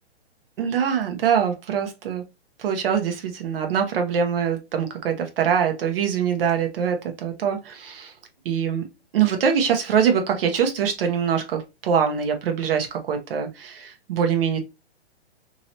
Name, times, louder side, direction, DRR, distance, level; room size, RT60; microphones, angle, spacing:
voice 1, 0.6-2.2 2.6-8.1 8.4-8.8 9.1-14.6, right 7 dB, 55° right, 1.0 m, -23 dB
2.9 x 2.8 x 2.9 m
hypercardioid pair, 150°, 33 cm